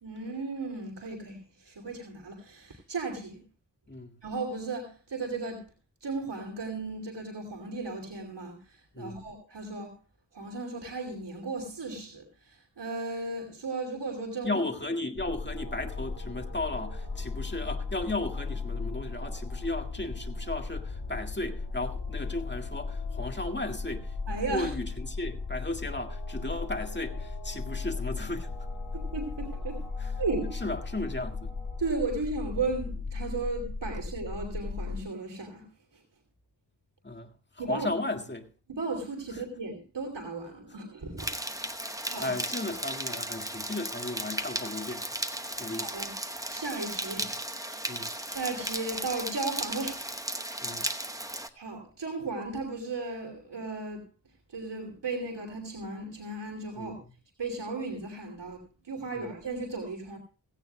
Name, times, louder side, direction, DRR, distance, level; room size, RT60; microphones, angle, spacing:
voice 1, 0.0-3.4 4.2-5.6 6.0-9.9 10.3-14.5 24.3-24.7 28.9-29.9 30.2-30.6 31.8-35.7 35.9-36.0 37.6-37.9 38.7-41.3 41.6-41.8 42.0-42.3 45.7-47.4 47.7-50.0 51.2-54.1 54.5-57.0 57.4-60.2, right 3 dB, 80° right, 2.9 m, -35 dB
voice 2, 3.9-4.2 8.9-9.2 14.4-28.5 30.0-30.1 30.5-31.5 37.0-38.5 42.1-45.3 45.6-45.9 47.9-48.1 50.6-50.9 56.8-56.9 59.1-59.3, left 2 dB, 25° left, 1.8 m, -35 dB
sound 1, 15.2-35.0, left 4 dB, 85° left, 2.7 m, -36 dB
sound 2, 15.5-32.1, left 3 dB, 50° left, 5.9 m, -51 dB
sound 3, 41.2-51.5, right 1 dB, 10° right, 0.9 m, -35 dB
16.5 x 16.5 x 2.2 m
wide cardioid pair, 90°, 42 cm